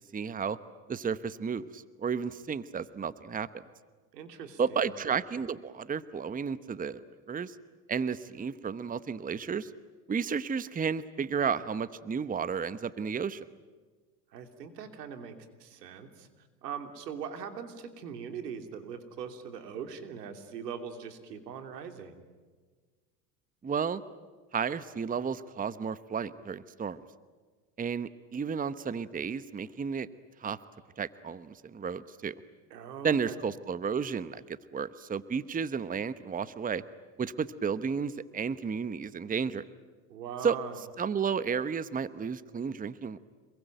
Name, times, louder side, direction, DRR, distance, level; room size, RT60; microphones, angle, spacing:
voice 1, 0.1-0.6 0.9-3.5 4.6-7.0 7.3-7.5 7.9-9.7 10.1-13.4 23.6-24.0 24.5-27.0 27.8-30.1 30.4-30.6 31.0-32.3 33.0-36.8 37.2-39.6 40.4-40.6 41.0-43.2, right 6 dB, 15° right, 15 dB, 1.0 m, -32 dB
voice 2, 4.1-4.9 14.3-16.3 16.6-22.2 32.7-33.4 40.1-40.8, right 7 dB, 90° right, 7 dB, 3.0 m, -41 dB
27.0 x 22.5 x 9.2 m, 1.4 s
hypercardioid pair, 90°, 47 cm